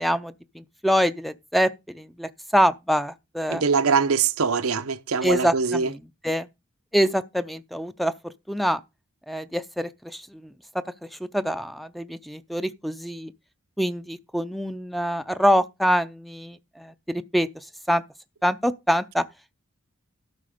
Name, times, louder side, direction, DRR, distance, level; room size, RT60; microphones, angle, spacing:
voice 1, 0.0-3.6 5.2-6.0 6.2-6.5 6.9-8.8 9.3-10.5 11.3-13.3 13.8-17.5 17.9-18.0 18.4-19.2, equal, ahead, 0.5 m, -25 dB
voice 2, 3.5-5.9, right 5 dB, 90° right, 0.8 m, -23 dB
12.5 x 5.8 x 5.0 m
head